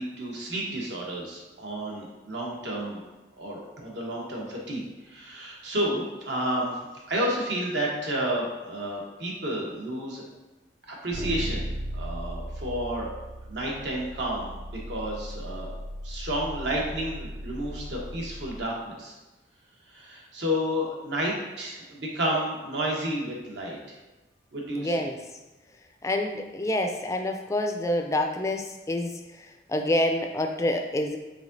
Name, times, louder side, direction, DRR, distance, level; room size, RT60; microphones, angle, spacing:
voice 1, 0.0-3.0 3.4-4.8 5.1-6.7 7.1-10.2 10.9-11.7 11.9-13.1 13.5-14.5 14.9-15.7 16.0-19.1 19.9-23.8 24.5-24.9, equal, 75° right, -2 dB, 1.0 m, -31 dB
sound 1, 11.1-18.6, equal, 55° right, 0.4 m, -37 dB
voice 2, 24.8-25.2 26.0-29.1 29.7-31.2, left 1 dB, 15° left, 4 dB, 0.3 m, -27 dB
4.9 x 3.5 x 2.6 m, 1.1 s
head